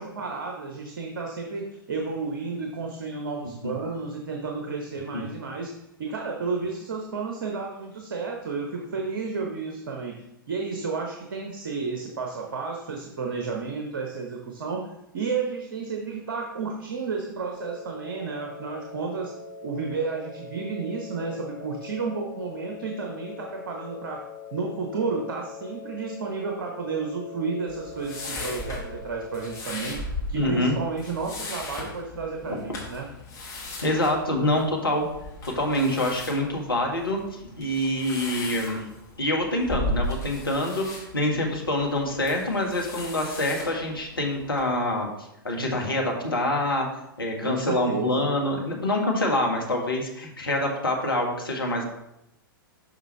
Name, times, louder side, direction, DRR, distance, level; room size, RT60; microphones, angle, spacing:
voice 1, 0.0-5.7 6.0-14.9 15.1-19.3 19.6-24.2 24.5-30.0 30.3-33.1 47.4-48.3, right 4 dB, 55° right, 1 dB, 0.9 m, -32 dB
sound 1, 17.5-29.5, left 4 dB, 45° left, 1.9 m, -42 dB
sound 2, 27.7-44.6, left 1 dB, 25° left, 1.8 m, -37 dB
voice 2, 30.3-30.7 33.8-35.1 35.5-37.2 37.6-38.9 39.2-45.1 45.4-46.9 47.2-51.8, left 1 dB, 75° left, 1 dB, 1.5 m, -26 dB
6.4 x 5.5 x 3.2 m, 0.84 s
figure-of-eight pair, 105°, 12 cm